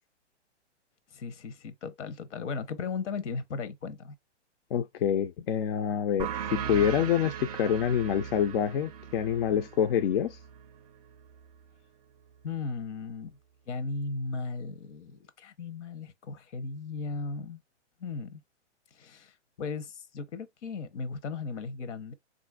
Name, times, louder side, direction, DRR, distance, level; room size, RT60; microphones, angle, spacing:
voice 1, 1.1-4.1 12.4-13.4 13.7-17.6 18.0-18.4 18.9-22.1, left 4 dB, 80° left, 0.8 m, -36 dB
voice 2, 4.7-10.4, left 9 dB, 55° left, 0.4 m, -27 dB
sound 1, 6.2-11.4, right 8 dB, 35° right, 0.4 m, -38 dB
3.9 x 2.5 x 2.2 m
hypercardioid pair, 145°, 36 cm